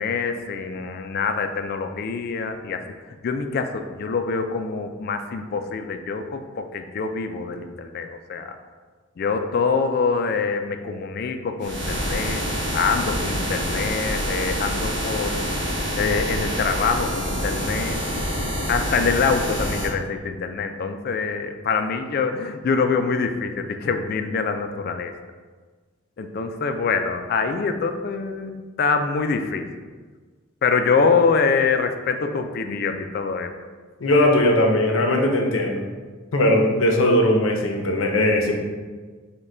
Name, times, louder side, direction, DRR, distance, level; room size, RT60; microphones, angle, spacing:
voice 1, 0.0-2.8 3.2-8.6 9.2-12.4 12.7-15.6 16.0-18.0 18.7-25.1 26.2-29.7 30.6-33.5, left 5 dB, 50° left, 7 dB, 0.3 m, -25 dB
sound 1, 11.6-19.9, equal, 55° right, 1.2 m, -26 dB
voice 2, 34.0-35.8 36.3-38.6, left 1 dB, 85° left, 2 dB, 0.6 m, -19 dB
5.4 x 2.2 x 3.7 m, 1.4 s
head